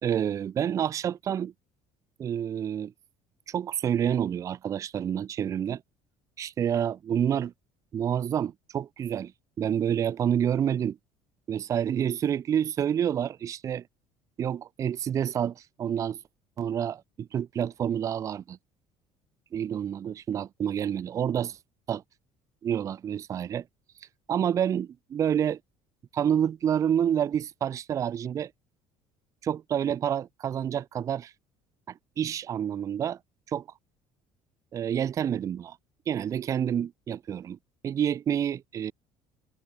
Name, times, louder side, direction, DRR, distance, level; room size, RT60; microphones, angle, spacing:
voice 1, 0.0-1.5 2.2-2.9 3.5-5.8 6.4-7.5 7.9-9.3 9.6-11.0 11.5-13.8 14.4-16.2 16.6-18.6 19.5-21.6 21.9-22.0 22.6-23.7 24.3-25.6 26.1-28.5 29.4-31.3 31.9-33.2 33.5-33.6 34.7-35.8 36.1-37.6 37.8-38.9, right 9 dB, 25° right, 0.6 m, -28 dB
cardioid pair, 175°, 12 cm